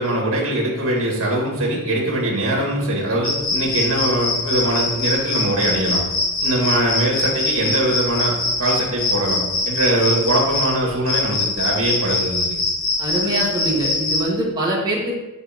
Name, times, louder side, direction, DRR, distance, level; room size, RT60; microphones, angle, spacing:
voice 1, 0.0-6.0 6.4-12.6, right 1 dB, 70° right, -2 dB, 2.1 m, -22 dB
sound 1, 3.2-14.2, left 2 dB, 70° left, 1.2 m, -23 dB
voice 2, 13.0-15.2, right 1 dB, 20° right, -4 dB, 1.9 m, -23 dB
11.0 x 4.1 x 3.0 m, 1.0 s
head